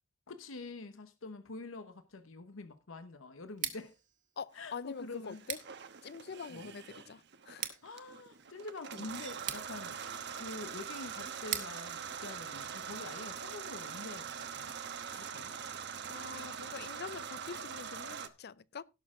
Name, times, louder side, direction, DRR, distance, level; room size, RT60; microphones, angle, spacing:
voice 1, 0.3-3.9 4.5-5.4 6.5-6.7 7.8-10.0 10.3-14.7 15.1-15.5 17.6-17.7, left 3 dB, 80° left, 0.9 m, -46 dB
Scissors, 3.5-13.3, right 9 dB, 40° right, 1.6 m, -46 dB
voice 2, 4.4-5.6 6.0-6.8 7.1-7.2 7.5-7.6 15.1-15.2 16.1-18.8, left 5 dB, 55° left, 0.5 m, -44 dB
sound 1, 5.2-18.3, right 7 dB, 60° right, 1.1 m, -43 dB
17.0 x 6.6 x 3.7 m
head